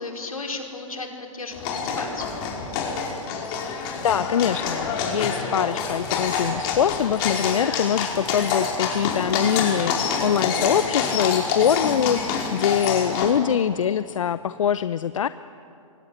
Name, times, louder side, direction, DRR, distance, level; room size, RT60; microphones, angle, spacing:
voice 1, 0.0-2.4, left 3 dB, 90° left, 2 dB, 5.1 m, -34 dB
sound 1, 1.5-13.3, left 5 dB, 40° left, 5.2 m, -27 dB
voice 2, 3.9-15.3, left 9 dB, 70° left, 14 dB, 0.7 m, -23 dB
27.5 x 23.5 x 9.1 m, 2.7 s
hypercardioid pair, 120°, 18 cm